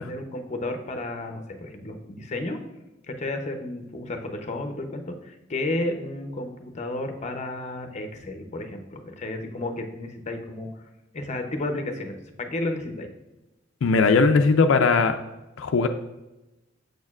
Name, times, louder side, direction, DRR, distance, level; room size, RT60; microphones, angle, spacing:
voice 1, 0.0-2.6 3.1-10.8 11.1-13.1, left 2 dB, 35° left, 6 dB, 0.6 m, -32 dB
voice 2, 13.8-15.2 15.6-15.9, left 4 dB, 85° left, 6 dB, 0.4 m, -19 dB
6.4 x 6.4 x 2.4 m, 1.0 s
head